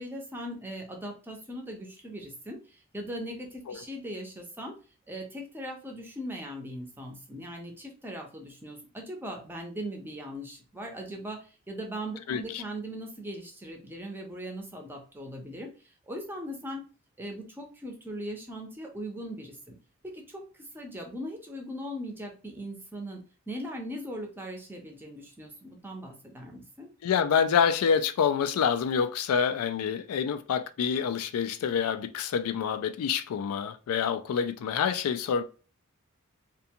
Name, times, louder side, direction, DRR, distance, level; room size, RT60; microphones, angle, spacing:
voice 1, 0.0-4.7 5.1-15.7 16.1-16.8 17.2-19.8 20.0-20.4 20.7-23.2 23.5-26.9, equal, 10° right, 0.5 m, -39 dB
voice 2, 12.3-12.6 27.0-35.4, left 7 dB, 85° left, 0.3 m, -27 dB
2.5 x 2.2 x 2.7 m
head